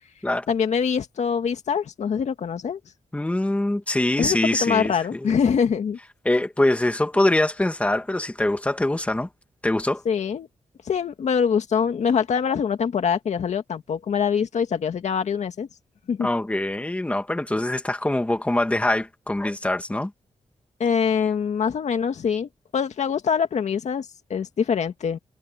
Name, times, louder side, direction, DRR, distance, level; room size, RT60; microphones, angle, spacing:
voice 1, 0.5-2.8 4.2-6.0 10.1-10.5 10.9-15.7 16.1-16.3 20.8-25.2, left 7 dB, 75° left, 2.1 m, -24 dB
voice 2, 3.1-5.3 6.3-9.3 9.6-10.0 16.2-20.1, left 1 dB, 10° left, 1.9 m, -23 dB
wide cardioid pair, 125°, 12 cm